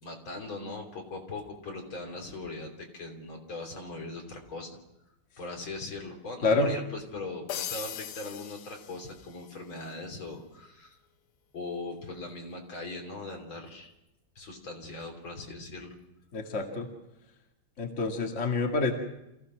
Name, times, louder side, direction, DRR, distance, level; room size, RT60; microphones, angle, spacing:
voice 1, 0.0-4.7 5.4-11.0 11.5-13.9 14.4-16.0, left 2 dB, 70° left, 2 dB, 4.1 m, -40 dB
sound 1, 7.5-9.6, left 9 dB, 90° left, 1.9 m, -39 dB
voice 2, 16.3-16.9 17.8-18.9, left 3 dB, 35° left, 2 dB, 2.3 m, -27 dB
27.5 x 16.0 x 6.3 m, 0.90 s
omnidirectional pair, 2.3 m